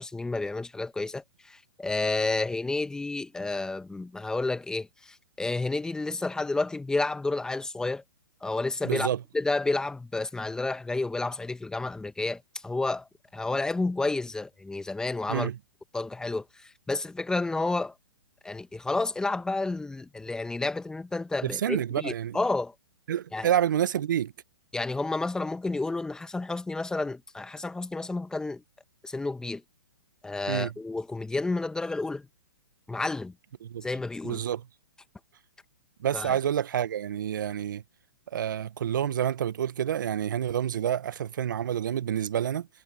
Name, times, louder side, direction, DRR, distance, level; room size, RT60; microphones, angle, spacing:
voice 1, 0.0-8.0 8.4-9.1 9.3-13.1 13.3-15.5 15.9-17.9 18.4-22.7 23.3-23.5 24.7-28.6 29.0-29.6 30.2-32.3 32.9-33.3 33.8-34.4 36.1-36.4, left 3 dB, 5° left, 1.8 m, -30 dB
voice 2, 8.8-9.2 15.3-15.6 21.4-22.4 23.1-24.3 30.5-30.7 33.6-33.8 34.2-34.6 36.0-37.8 38.3-42.7, right 10 dB, 65° right, 1.4 m, -28 dB
hypercardioid pair, 125°, 11 cm